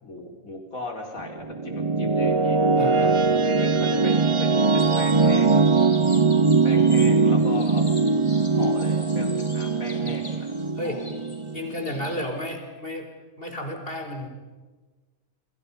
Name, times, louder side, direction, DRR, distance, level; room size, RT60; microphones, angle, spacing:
voice 1, 0.0-2.6 3.4-5.9 6.6-8.0 8.5-11.0, left 2 dB, 85° left, 3 dB, 4.7 m, -37 dB
sound 1, 1.2-12.2, right 4 dB, 30° right, 0.6 m, -21 dB
voice 2, 2.8-3.2 10.8-11.0 11.5-13.1 13.4-14.3, left 1 dB, 45° left, 4 dB, 4.1 m, -32 dB
sound 2, 4.6-12.2, left 2 dB, 25° left, 2.9 m, -43 dB
29.5 x 25.0 x 5.5 m, 1.3 s
omnidirectional pair, 1.4 m